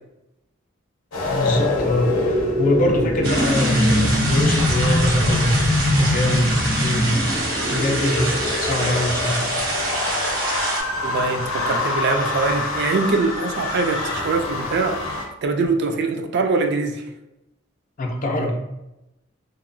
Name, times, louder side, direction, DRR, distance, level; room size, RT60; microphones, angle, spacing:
sound 1, 1.1-15.3, left 2 dB, 90° left, 0.6 m, -23 dB
voice 1, 1.3-5.7 6.0-7.2 7.7-9.5 18.0-18.6, left 1 dB, 40° left, 2 dB, 0.4 m, -23 dB
sound 2, 3.2-10.8, right 1 dB, 75° right, 0.9 m, -26 dB
voice 2, 11.0-15.0 15.4-17.1, right 3 dB, 55° right, 5 dB, 0.3 m, -23 dB
2.8 x 2.3 x 2.5 m, 0.93 s
head